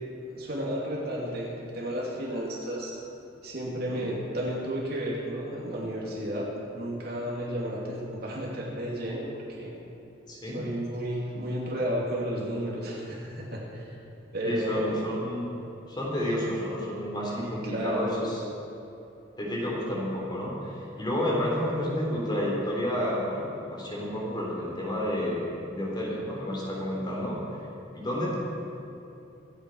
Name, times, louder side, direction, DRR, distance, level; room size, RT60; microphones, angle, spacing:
voice 1, 0.3-2.9 3.4-6.5 6.7-9.7 10.5-13.9 14.3-15.0 17.3-18.1, equal, 50° right, -4 dB, 2.9 m, -32 dB
voice 2, 10.3-10.6 14.4-15.4 15.9-18.4 19.4-27.4 27.9-28.4, equal, 20° left, -4 dB, 3.8 m, -30 dB
25.5 x 9.1 x 4.8 m, 2.8 s
head